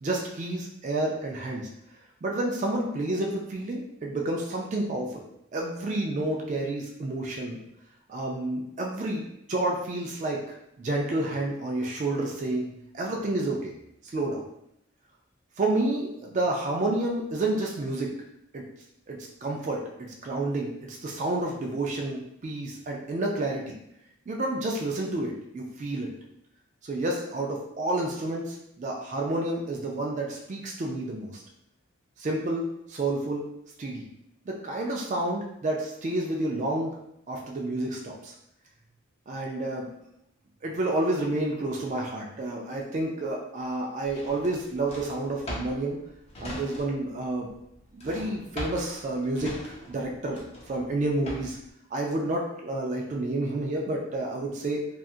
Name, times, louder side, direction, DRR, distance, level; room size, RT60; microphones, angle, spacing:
voice 1, 0.0-1.7 2.2-5.2 5.5-7.6 8.1-12.6 12.9-13.7 14.0-14.5 15.6-18.1 18.5-18.6 19.1-23.7 24.3-26.1 26.8-31.4 32.2-33.4 33.8-34.1 34.5-37.0 37.3-38.3 39.3-39.9 40.6-46.0 46.4-47.5 47.9-51.6 51.9-54.9, right 2 dB, 35° right, -1 dB, 0.3 m, -30 dB
Drawer open or close, 44.1-47.2 47.4-51.7, left 1 dB, 30° left, 0.5 m, -40 dB
2.7 x 2.3 x 2.4 m, 0.79 s
head